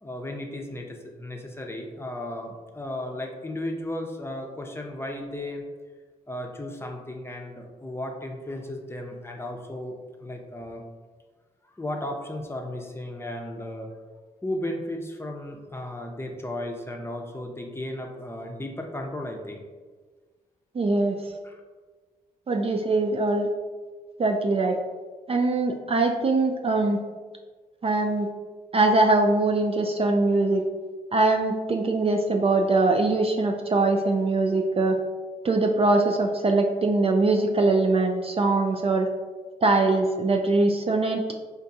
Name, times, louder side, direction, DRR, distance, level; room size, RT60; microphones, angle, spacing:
voice 1, 0.0-5.6 6.3-10.8 11.7-13.9 14.4-19.6 21.4-21.6, left 1 dB, 15° left, 2 dB, 0.6 m, -35 dB
voice 2, 20.8-21.2 22.5-23.5 24.2-24.8 25.3-27.0 27.8-28.3 28.7-30.6 31.1-35.0 35.4-39.1 39.6-41.2, right 2 dB, 35° right, 3 dB, 0.4 m, -22 dB
4.4 x 2.5 x 2.6 m, 1.4 s
supercardioid pair, 55°, 16 cm